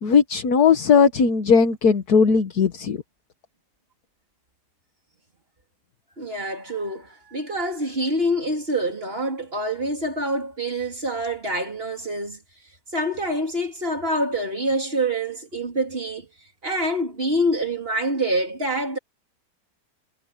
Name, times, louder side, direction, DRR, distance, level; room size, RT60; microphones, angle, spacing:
voice 1, 0.0-3.0, left 5 dB, 65° left, 1.9 m, -18 dB
voice 2, 6.2-12.4 12.9-16.3 16.6-19.0, right 1 dB, 35° right, 3.7 m, -26 dB
omnidirectional pair, 1.8 m